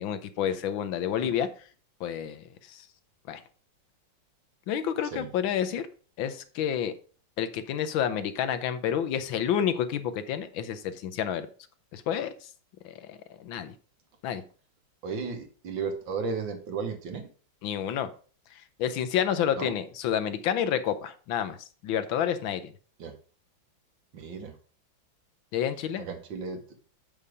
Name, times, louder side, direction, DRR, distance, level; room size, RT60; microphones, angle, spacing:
voice 1, 0.0-1.5 2.0-2.9 3.3-3.4 4.7-5.9 6.2-6.9 7.4-11.5 11.9-12.5 12.8-13.7 14.2-14.4 17.6-18.1 18.8-21.6 21.8-22.7 25.5-26.0, left 9 dB, 85° left, 11 dB, 1.6 m, -29 dB
voice 2, 15.0-17.2 19.6-19.7 23.0-23.1 24.1-24.6 26.0-26.6, right 5 dB, 75° right, 5 dB, 2.0 m, -34 dB
6.9 x 5.6 x 4.8 m, 0.40 s
omnidirectional pair, 2.1 m